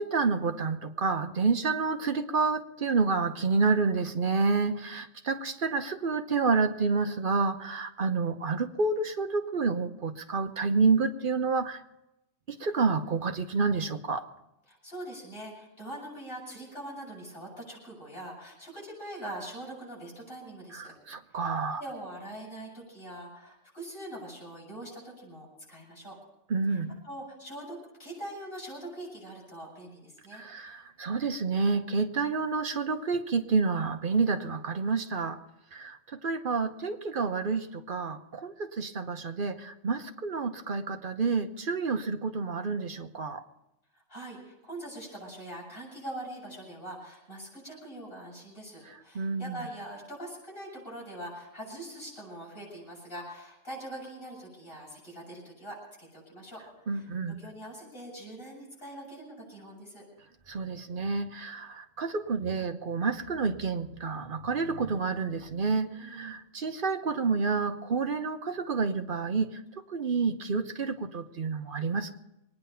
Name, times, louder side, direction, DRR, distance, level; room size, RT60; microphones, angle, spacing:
voice 1, 0.0-11.8 12.5-14.2 20.7-21.8 26.5-27.0 30.3-35.4 35.7-43.4 49.1-49.6 56.9-57.4 60.5-69.6 69.9-72.1, right 4 dB, 50° right, 7 dB, 1.0 m, -29 dB
voice 2, 14.7-20.9 21.3-21.5 21.8-26.1 26.7-30.7 44.1-57.1 57.4-60.0 65.8-66.4, right 1 dB, 45° left, -5 dB, 7.8 m, -43 dB
23.0 x 9.9 x 5.7 m, 0.90 s
omnidirectional pair, 1.3 m